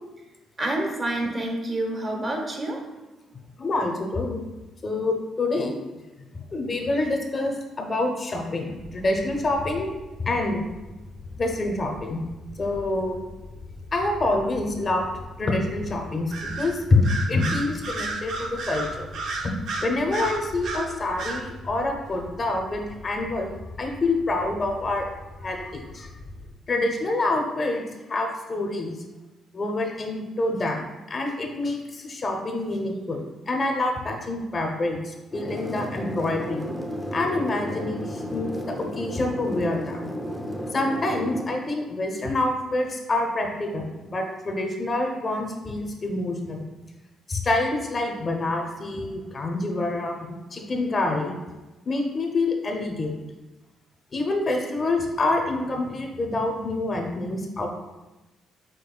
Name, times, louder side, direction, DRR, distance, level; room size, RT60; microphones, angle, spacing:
voice 1, 0.6-2.8, right 1 dB, 35° right, 1 dB, 1.0 m, -28 dB
voice 2, 3.6-4.4 4.8-5.8 6.3-9.9 10.2-10.6 11.4-12.2 12.6-13.2 13.9-15.1 15.4-19.1 19.4-19.5 19.8-23.5 23.8-25.1 25.4-26.1 26.7-27.8 28.1-29.0 29.5-36.6 37.1-40.1 40.7-46.7 47.3-51.4 51.9-53.2 54.1-57.7, left 2 dB, 35° left, 2 dB, 0.7 m, -26 dB
sound 1, 8.8-26.5, left 2 dB, 70° left, 0.8 m, -43 dB
Bird vocalization bird call bird song, 16.3-16.7 17.0-20.9 21.2-21.4, right 3 dB, 70° right, 0.6 m, -31 dB
sound 2, 35.3-41.4, equal, ahead, 0.6 m, -33 dB
5.2 x 4.0 x 2.3 m, 1.1 s
cardioid pair, 90°, 0 cm